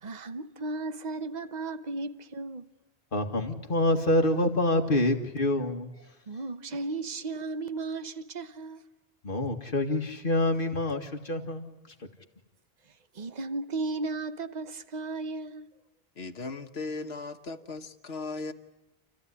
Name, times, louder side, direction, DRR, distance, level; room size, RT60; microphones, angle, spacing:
voice 1, 0.0-2.6 6.3-8.8 13.1-15.7, right 3 dB, 45° right, 1.1 m, -35 dB
voice 2, 3.1-5.9 9.2-11.7, left 1 dB, 55° left, 2.1 m, -26 dB
voice 3, 16.2-18.5, left 3 dB, 80° left, 1.5 m, -37 dB
29.5 x 14.5 x 9.8 m
omnidirectional pair, 1.1 m